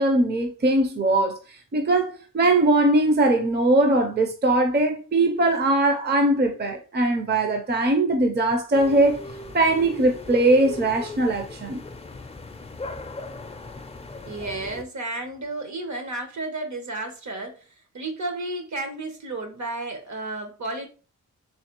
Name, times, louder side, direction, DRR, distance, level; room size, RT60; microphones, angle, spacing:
voice 1, 0.0-9.2 9.5-11.8, right 2 dB, 35° right, 0.5 m, -21 dB
sound 1, 8.7-14.8, left 3 dB, 20° left, 0.4 m, -38 dB
voice 2, 14.3-17.6 17.9-20.9, right 2 dB, 65° right, 0.9 m, -32 dB
3.4 x 3.1 x 2.9 m
wide cardioid pair, 95°, 31 cm